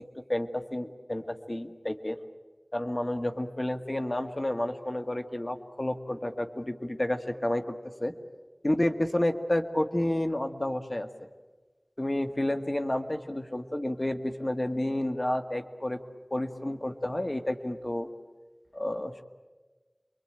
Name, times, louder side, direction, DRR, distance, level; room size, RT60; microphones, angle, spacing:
voice 1, 0.2-2.2 2.7-8.1 8.6-11.1 12.0-16.0 16.3-18.1 18.7-19.2, left 1 dB, 45° left, 6 dB, 1.8 m, -30 dB
28.5 x 23.0 x 9.0 m, 1.3 s
wide cardioid pair, 45°, 0 cm